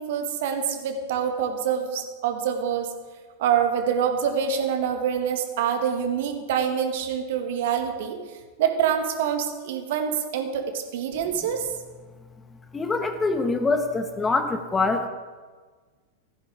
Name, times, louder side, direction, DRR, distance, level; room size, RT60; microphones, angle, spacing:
voice 1, 0.0-2.9 3.4-8.2 8.6-11.7, right 8 dB, 55° right, 6 dB, 1.8 m, -26 dB
voice 2, 12.7-15.1, left 3 dB, 15° left, 8 dB, 1.1 m, -24 dB
17.0 x 14.0 x 3.7 m, 1.4 s
figure-of-eight pair, 90°, 0 cm